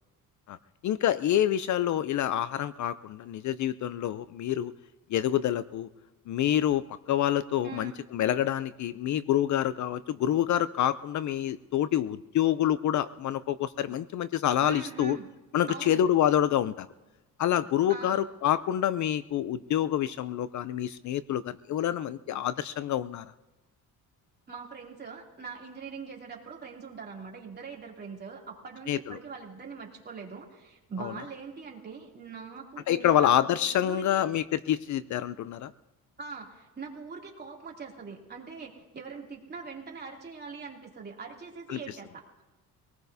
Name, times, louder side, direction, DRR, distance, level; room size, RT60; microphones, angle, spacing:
voice 1, 0.8-4.7 5.1-5.9 6.3-6.8 7.1-15.2 15.5-16.9 17.4-23.3 28.9-29.2 31.0-31.1 32.9-35.7 41.7-41.8, left 11 dB, 55° left, 15 dB, 0.5 m, -27 dB
voice 2, 7.6-8.0 14.6-15.3 15.7-16.0 17.9-18.2 24.5-33.3 33.6-34.2 36.2-42.4, right 5 dB, 25° right, -1 dB, 2.8 m, -42 dB
24.5 x 18.5 x 2.7 m, 1.1 s
cardioid pair, 135°, 37 cm